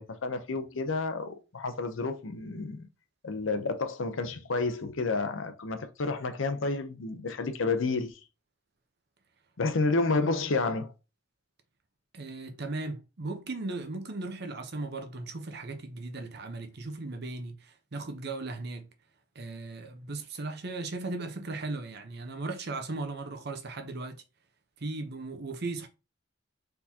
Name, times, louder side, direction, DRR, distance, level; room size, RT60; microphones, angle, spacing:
voice 1, 0.0-2.8 3.2-8.2 9.6-10.9, left 3 dB, 80° left, 0.7 m, -30 dB
voice 2, 12.1-18.9 19.3-24.2 24.8-25.9, right 3 dB, 55° right, 0.8 m, -37 dB
4.4 x 3.9 x 2.8 m
head